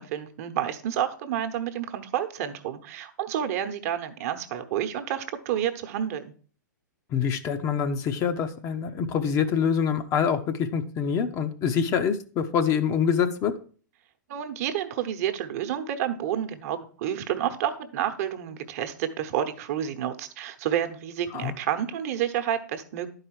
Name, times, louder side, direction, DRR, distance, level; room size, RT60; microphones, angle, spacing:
voice 1, 0.0-6.3 14.3-23.1, right 10 dB, 50° right, 8 dB, 1.0 m, -29 dB
voice 2, 7.1-13.5 21.3-21.5, left 7 dB, 30° left, 7 dB, 0.8 m, -25 dB
11.0 x 4.8 x 4.7 m, 0.41 s
figure-of-eight pair, 105°, 10 cm